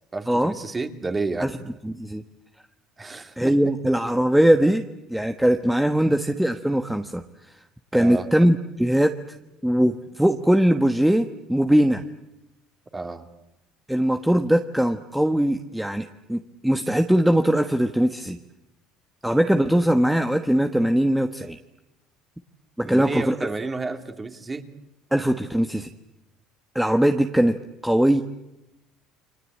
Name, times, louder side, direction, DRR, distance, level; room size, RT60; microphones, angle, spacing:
voice 1, 0.1-1.5 3.0-3.5 7.9-8.3 12.9-13.3 22.8-24.7, right 3 dB, 20° right, 7 dB, 2.7 m, -31 dB
voice 2, 1.8-2.2 3.4-4.8 5.1-7.2 7.9-9.1 9.6-12.0 13.9-18.4 19.2-21.6 22.8-23.4 25.1-25.9 26.7-27.6 27.8-28.2, right 1 dB, 5° right, 6 dB, 1.3 m, -20 dB
29.5 x 23.5 x 8.6 m, 0.93 s
supercardioid pair, 95°, 0 cm